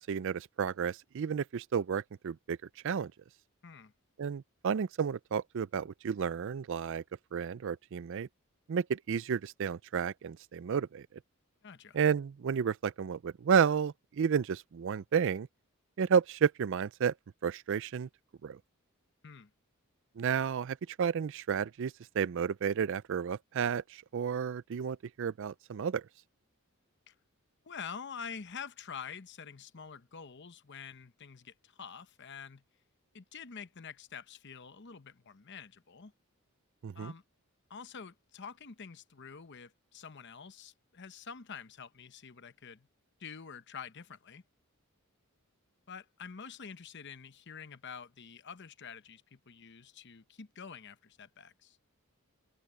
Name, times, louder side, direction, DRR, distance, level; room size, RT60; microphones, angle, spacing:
voice 1, 0.0-2.6 2.8-3.1 4.2-7.0 7.3-8.3 8.7-11.1 11.9-15.5 16.0-17.1 17.4-18.1 18.4-18.6 20.2-26.0 36.8-37.1, right 7 dB, 60° right, 0.4 m, -31 dB
voice 2, 11.6-12.0 19.2-19.5 27.1-27.2 27.6-32.6 33.1-36.1 36.9-37.2 37.7-42.9 43.2-44.4 45.9-51.8, left 6 dB, 50° left, 0.9 m, -47 dB
head